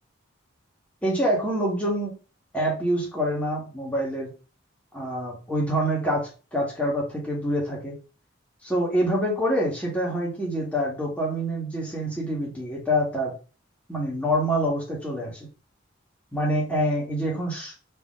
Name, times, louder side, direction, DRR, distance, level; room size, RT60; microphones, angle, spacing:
voice 1, 1.0-2.2 2.5-4.3 4.9-8.0 8.6-13.3 13.9-15.5 16.3-17.7, equal, 5° left, -3 dB, 1.7 m, -26 dB
4.4 x 3.2 x 3.7 m, 0.34 s
head